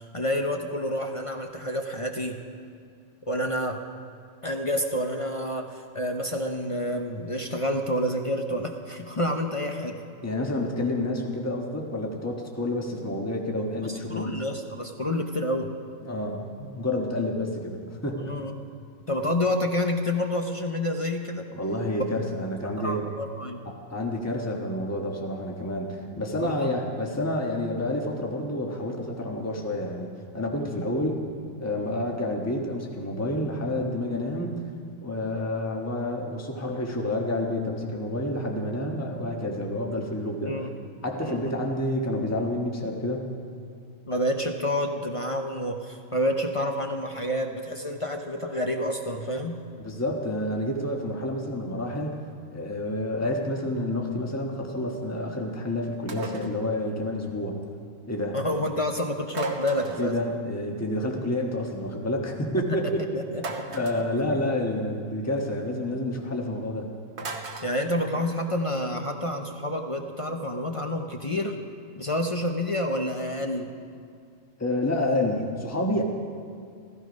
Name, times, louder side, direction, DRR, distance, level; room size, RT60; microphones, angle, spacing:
voice 1, 0.0-2.4 3.3-3.8 4.4-10.0 13.8-15.7 18.2-18.5 19.1-21.5 22.8-23.7 26.4-26.7 30.7-30.8 40.4-40.7 41.2-41.5 44.1-49.6 58.3-60.1 62.7-62.8 63.1-63.8 67.6-71.6 72.0-73.7, left 1 dB, 30° left, 3 dB, 0.7 m, -29 dB
voice 2, 10.2-14.4 16.0-18.3 21.5-23.1 23.9-30.1 30.3-31.1 31.6-34.7 35.0-40.6 41.0-43.3 49.8-52.2 52.5-57.5 58.1-58.4 60.0-63.2 63.7-66.9 74.6-76.0, left 1 dB, 10° left, 0 dB, 1.4 m, -29 dB
sound 1, 56.1-56.6 59.3-60.1 63.4-64.1 67.2-67.7, right 3 dB, 55° right, 1.3 m, -35 dB
15.0 x 15.0 x 5.3 m, 2.3 s
omnidirectional pair, 1.4 m